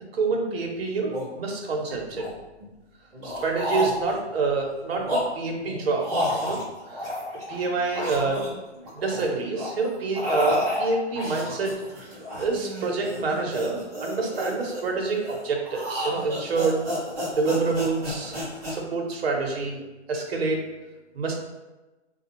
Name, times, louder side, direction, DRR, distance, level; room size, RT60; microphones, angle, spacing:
voice 1, 0.1-2.3 3.2-6.1 6.4-6.6 6.9-7.1 7.5-8.4 8.9-12.1 12.4-16.8 17.4-18.4 18.7-19.8 20.1-20.7 21.1-21.3, right 3 dB, 55° right, 1 dB, 0.8 m, -27 dB
sound 1, 0.6-0.7 1.0-1.3 1.9-2.7 3.1-4.3 4.8-7.6 7.9-9.3 9.5-18.7, left 1 dB, 15° right, 0.6 m, -31 dB
4.1 x 2.3 x 2.9 m, 1.1 s
hypercardioid pair, 165°, 36 cm